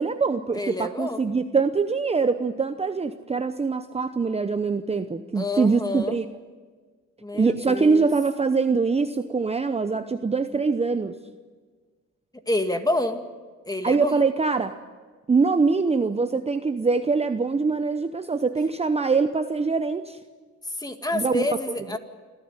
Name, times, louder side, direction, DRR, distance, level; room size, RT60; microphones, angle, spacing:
voice 1, 0.0-6.3 7.3-11.1 13.8-14.7 15.3-20.2 21.1-21.5, right 4 dB, 20° right, 9 dB, 0.8 m, -23 dB
voice 2, 0.5-1.2 5.3-6.2 7.2-8.1 12.5-13.3 13.7-14.2 20.8-22.0, left 1 dB, 10° left, 7 dB, 2.0 m, -28 dB
27.0 x 13.0 x 9.7 m, 1.5 s
cardioid pair, 90°, 30 cm